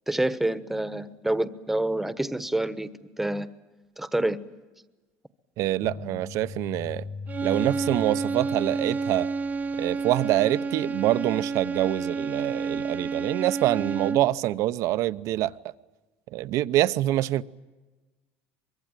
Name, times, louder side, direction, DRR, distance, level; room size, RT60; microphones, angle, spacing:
voice 1, 0.1-2.9 3.2-3.5 4.0-4.4, right 1 dB, 5° right, 1.2 m, -27 dB
voice 2, 5.6-7.1 7.4-9.3 9.8-15.7 16.3-17.5, right 15 dB, 65° right, 0.8 m, -25 dB
sound 1, 5.8-10.0, left 4 dB, 60° left, 6.6 m, -40 dB
sound 2, 7.3-14.4, right 4 dB, 30° right, 0.9 m, -30 dB
24.0 x 23.0 x 9.1 m
cardioid pair, 120°, 6 cm